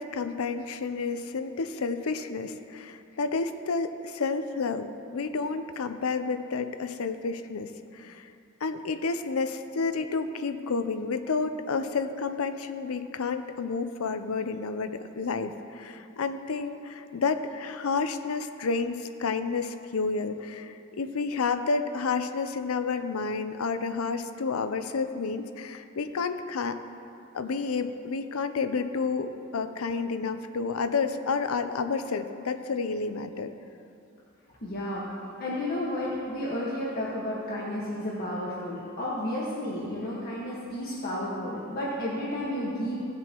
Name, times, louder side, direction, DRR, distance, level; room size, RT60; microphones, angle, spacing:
voice 1, 0.0-8.2 8.6-26.8 27.3-33.5, left 4 dB, 85° left, 9 dB, 0.6 m, -30 dB
voice 2, 34.6-35.0 35.4-43.1, left 1 dB, 45° left, -7 dB, 1.5 m, -32 dB
17.0 x 7.6 x 3.0 m, 2.6 s
head